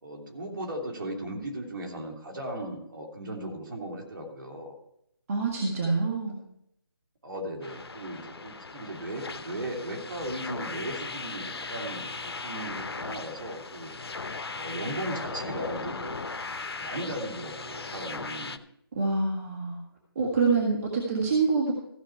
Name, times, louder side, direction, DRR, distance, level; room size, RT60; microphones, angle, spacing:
voice 1, 0.0-4.7 7.2-13.9 14.5-16.2 16.8-18.6, right 1 dB, 55° right, 1 dB, 3.1 m, -37 dB
voice 2, 5.3-6.4 19.0-19.8 20.2-21.7, right 4 dB, 35° right, -2 dB, 1.8 m, -26 dB
sound 1, 7.6-18.6, left 4 dB, 85° left, 0.8 m, -38 dB
15.0 x 6.5 x 4.6 m, 0.75 s
figure-of-eight pair, 160°, 13 cm